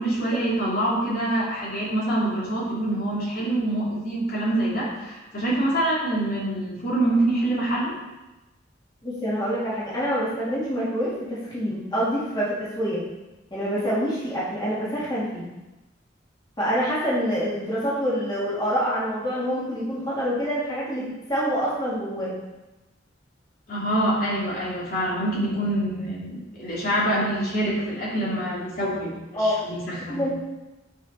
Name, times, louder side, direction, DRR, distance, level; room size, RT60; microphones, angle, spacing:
voice 1, 0.0-7.9 23.7-30.2, right 1 dB, 55° left, -7 dB, 2.9 m, -25 dB
voice 2, 9.0-13.0 13.5-15.5 16.6-21.0 21.3-22.3 29.3-29.5 30.1-30.3, equal, 25° left, -8 dB, 2.6 m, -26 dB
9.3 x 6.1 x 4.4 m, 1.0 s
head